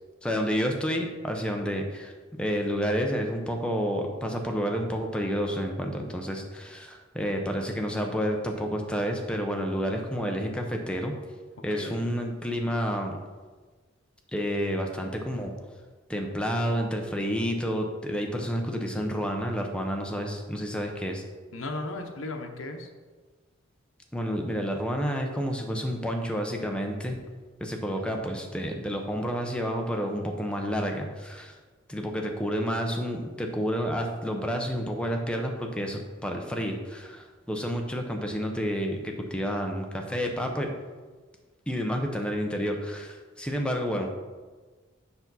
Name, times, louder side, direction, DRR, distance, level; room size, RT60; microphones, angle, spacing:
voice 1, 0.2-11.1 11.6-13.2 14.3-15.5 16.1-21.2 24.1-27.2 27.6-31.5 31.9-40.7 41.7-44.1, equal, 5° left, 2 dB, 0.7 m, -30 dB
voice 2, 11.7-12.1 21.5-22.9 28.0-28.4, left 2 dB, 80° left, 3 dB, 0.8 m, -36 dB
6.9 x 5.9 x 4.0 m, 1.4 s
head